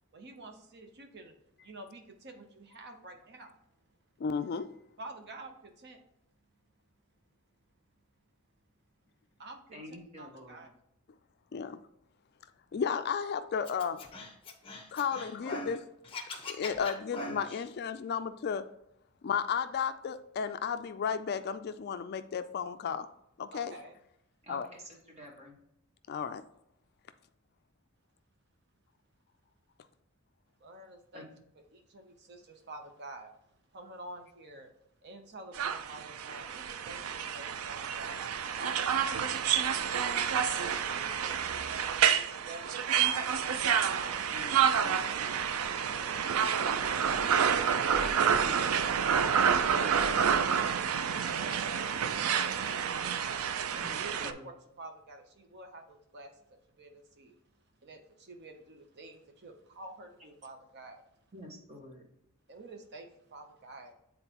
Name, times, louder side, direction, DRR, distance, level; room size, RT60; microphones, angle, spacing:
voice 1, 0.1-1.4 1.6-3.6 5.0-6.0 9.4-9.8 10.2-10.7 23.5-23.9 30.6-31.3 31.7-33.3 33.7-34.7 35.0-38.2 38.5-40.1 40.5-44.9 45.8-49.4 49.7-53.4 53.7-56.4 56.8-57.4 57.8-61.0 62.5-63.9, right 2 dB, 50° right, 6 dB, 0.7 m, -48 dB
voice 2, 4.2-4.7 11.5-11.8 12.7-14.1 14.9-15.8 16.5-18.7 19.2-23.1 23.4-23.8 24.5-24.7 26.1-26.4, left 6 dB, 50° left, 11 dB, 0.3 m, -33 dB
voice 3, 9.7-10.7 24.4-25.6 31.1-31.2 44.3-44.5 44.8-45.0 48.4-48.8 53.7-54.5 61.3-62.0, left 1 dB, 30° right, 0 dB, 1.4 m, -48 dB
Scratching (performance technique), 13.7-15.8 16.0-17.6, left 2 dB, 25° left, 1.0 m, -41 dB
sound 1, 35.5-54.3, right 7 dB, 85° right, 0.4 m, -29 dB
8.9 x 3.8 x 2.9 m, 0.82 s
head